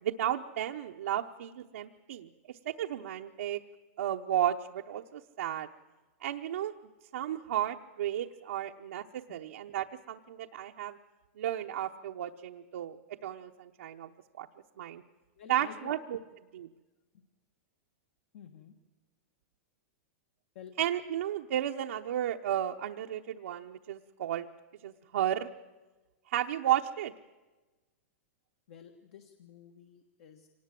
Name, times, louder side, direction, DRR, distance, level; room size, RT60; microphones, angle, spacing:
voice 1, 0.0-2.3 2.7-3.6 4.0-5.7 6.2-6.7 7.1-11.0 11.4-13.0 13.2-14.1 14.4-14.5 14.8-15.0 15.5-16.2 16.5-16.7 20.8-24.5 24.8-25.5 26.3-27.1, right 11 dB, 80° right, 1 dB, 0.9 m, -33 dB
voice 2, 15.4-15.9 18.3-18.7 20.5-20.7 28.7-30.5, left 9 dB, 60° left, 6 dB, 1.5 m, -50 dB
24.5 x 19.0 x 7.6 m, 1.2 s
supercardioid pair, 155°, 8 cm